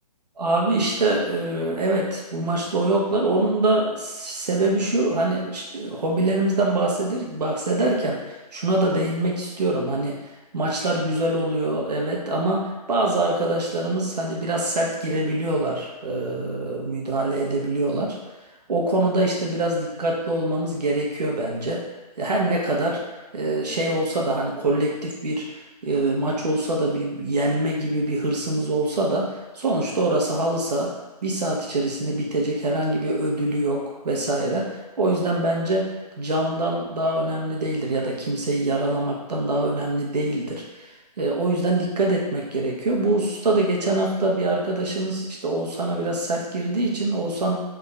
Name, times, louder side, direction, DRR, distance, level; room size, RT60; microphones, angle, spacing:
voice 1, 0.4-18.2 18.7-21.8 22.2-30.9 31.2-47.6, right 2 dB, 80° right, -2 dB, 1.0 m, -24 dB
3.5 x 2.5 x 3.3 m, 1.1 s
hypercardioid pair, 155°, 21 cm